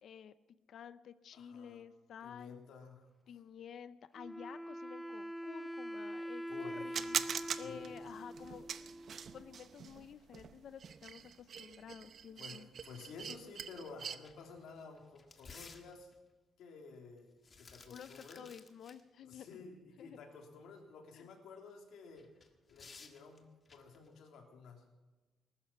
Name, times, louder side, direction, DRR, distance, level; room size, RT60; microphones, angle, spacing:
voice 1, 0.0-0.4 0.7-2.6 3.3-7.2 7.6-8.7 9.3-12.7 17.9-19.6 20.0-20.2 21.1-21.3, left 8 dB, 55° left, 13 dB, 0.6 m, -51 dB
voice 2, 1.3-1.8 2.2-3.1 6.5-7.9 12.4-16.1 16.6-17.3 17.6-18.4 19.2-22.3 22.7-24.8, left 4 dB, 80° left, 2 dB, 3.3 m, -53 dB
Wind instrument woodwind instrument, 4.2-9.7, equal, ahead, 0.4 m, -44 dB
sound 1, 6.9-14.2, right 7 dB, 50° right, 0.7 m, -43 dB
sound 2, 13.2-13.3 13.6-13.7 14.1-16.3 17.2-19.0 19.3-19.4 22.2-24.1, left 4 dB, 30° left, 1.6 m, -57 dB
20.0 x 12.5 x 5.7 m, 1.2 s
cardioid pair, 155°, 0 cm